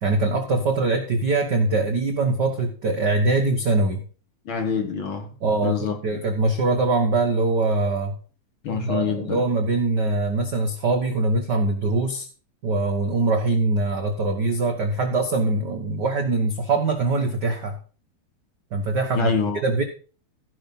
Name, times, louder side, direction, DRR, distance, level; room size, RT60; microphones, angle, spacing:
voice 1, 0.0-4.0 5.4-8.1 8.8-12.3 12.6-17.8 18.7-19.3 19.6-19.8, right 3 dB, 60° right, 1.1 m, -23 dB
voice 2, 4.5-5.3 5.6-6.2 8.6-9.4 19.2-19.6, left 5 dB, 50° left, 1.9 m, -26 dB
15.5 x 5.6 x 5.5 m
omnidirectional pair, 3.5 m